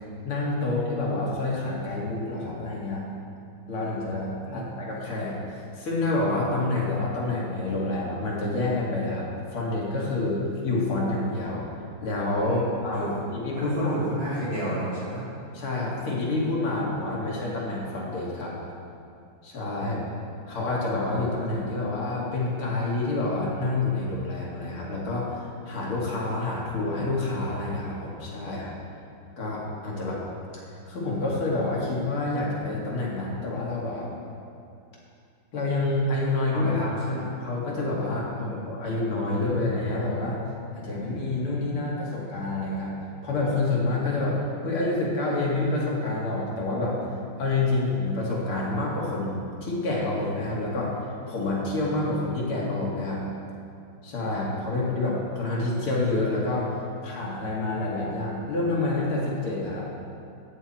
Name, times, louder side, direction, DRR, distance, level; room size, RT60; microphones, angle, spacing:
voice 1, 0.2-3.0 3.7-5.4 5.8-11.6 12.0-13.9 15.5-18.6 19.4-20.0 20.5-28.7 29.4-30.2 30.9-34.1 35.5-36.7 37.1-40.4 40.7-43.0 43.2-47.0 47.4-50.9 51.3-53.2 54.0-56.7 57.0-59.9, left 2 dB, 90° left, -5 dB, 3.2 m, -28 dB
voice 2, 12.4-13.2 13.5-15.3 19.8-20.1 36.5-37.3 38.3-38.6 54.6-54.7, right 1 dB, 65° right, -8 dB, 4.3 m, -31 dB
14.0 x 9.5 x 4.4 m, 2.5 s
omnidirectional pair, 2.3 m